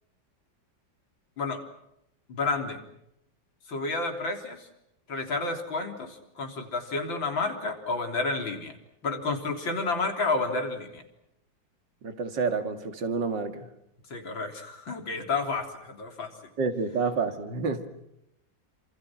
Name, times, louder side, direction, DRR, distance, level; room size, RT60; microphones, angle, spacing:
voice 1, 2.3-2.8 3.7-4.7 5.1-8.7 9.0-11.0 14.1-16.3, left 3 dB, 90° left, 4.3 m, -30 dB
voice 2, 12.0-13.7 16.6-17.9, right 4 dB, 70° right, 2.8 m, -29 dB
29.0 x 27.0 x 6.2 m
omnidirectional pair, 2.0 m